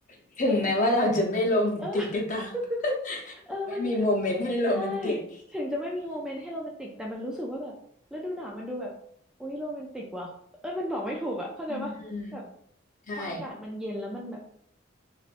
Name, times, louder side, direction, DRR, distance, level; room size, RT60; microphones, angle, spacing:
voice 1, 0.4-2.5 3.1-3.2 3.8-5.2 11.7-12.4 13.1-13.4, left 1 dB, 40° left, 0 dB, 0.6 m, -26 dB
voice 2, 1.8-2.1 2.5-3.0 3.5-4.0 4.6-5.2 5.5-7.7 8.1-8.9 9.4-10.3 10.6-11.9 12.3-12.4 13.1-14.4, left 1 dB, 5° right, -3 dB, 0.3 m, -34 dB
3.3 x 2.5 x 2.5 m, 0.67 s
head